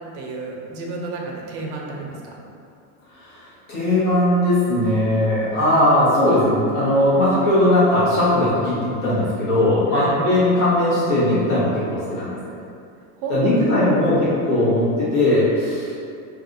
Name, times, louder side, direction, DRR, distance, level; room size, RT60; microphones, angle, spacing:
voice 1, 0.1-2.2 9.9-10.3 13.2-14.2, right 3 dB, 45° right, -1 dB, 0.5 m, -31 dB
voice 2, 3.3-12.4 13.3-16.0, left 1 dB, 55° left, -9 dB, 1.4 m, -19 dB
3.3 x 2.4 x 2.7 m, 2.4 s
supercardioid pair, 150°, 45 cm